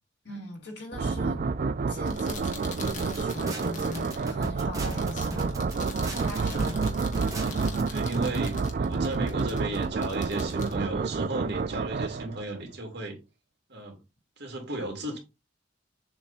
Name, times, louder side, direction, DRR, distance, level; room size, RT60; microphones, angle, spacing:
voice 1, 0.2-1.5 1.9-5.6 6.2-6.9, left 1 dB, 60° left, 2.8 m, -41 dB
sound 1, 0.9-12.6, right 4 dB, 45° right, 0.3 m, -29 dB
sound 2, 1.9-11.7, left 4 dB, 40° left, 1.4 m, -44 dB
sound 3, 2.8-7.8, right 1 dB, 20° right, 1.6 m, -38 dB
voice 2, 7.9-13.2 13.7-14.0 14.4-15.2, right 2 dB, 60° right, 2.4 m, -35 dB
7.1 x 3.3 x 4.1 m
head